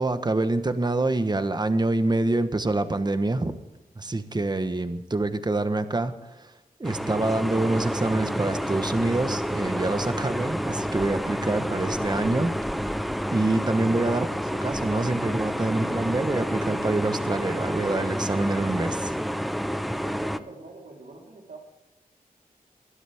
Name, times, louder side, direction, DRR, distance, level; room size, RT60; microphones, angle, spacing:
voice 1, 0.0-3.6 4.0-6.5 6.8-12.6 13.3-19.1, right 2 dB, 30° right, 10 dB, 1.2 m, -26 dB
sound 1, 6.8-20.4, equal, ahead, 0.8 m, -29 dB
voice 2, 20.0-21.6, right 3 dB, 75° right, -1 dB, 3.9 m, -44 dB
21.5 x 12.5 x 3.6 m, 1.0 s
wide cardioid pair, 65°, 15 cm